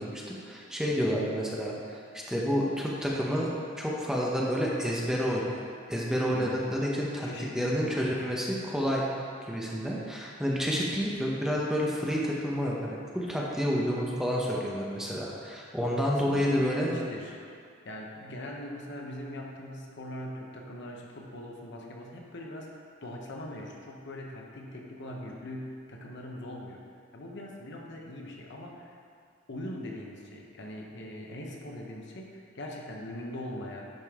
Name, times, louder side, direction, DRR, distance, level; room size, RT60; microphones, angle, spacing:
voice 1, 0.0-5.6 5.9-9.1 9.5-16.9, equal, 5° right, -4 dB, 0.9 m, -29 dB
voice 2, 6.3-6.7 7.2-8.2 16.1-17.4 17.8-26.8 27.1-29.0 29.5-33.9, left 1 dB, 60° left, 0 dB, 1.0 m, -41 dB
10.5 x 5.2 x 3.7 m, 2.4 s
head